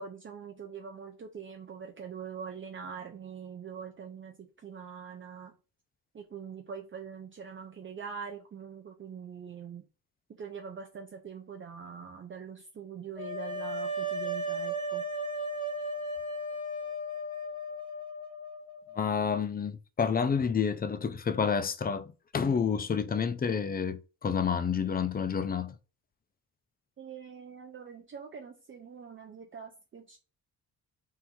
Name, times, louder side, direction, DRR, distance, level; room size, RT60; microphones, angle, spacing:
voice 1, 0.0-5.5 6.1-9.8 10.4-15.0 27.0-30.2, right 6 dB, 35° right, 0.6 m, -43 dB
sound 1, 13.2-19.0, right 1 dB, 15° right, 1.0 m, -35 dB
voice 2, 19.0-25.8, left 6 dB, 25° left, 0.4 m, -29 dB
3.7 x 2.6 x 4.5 m
cardioid pair, 105°, 36 cm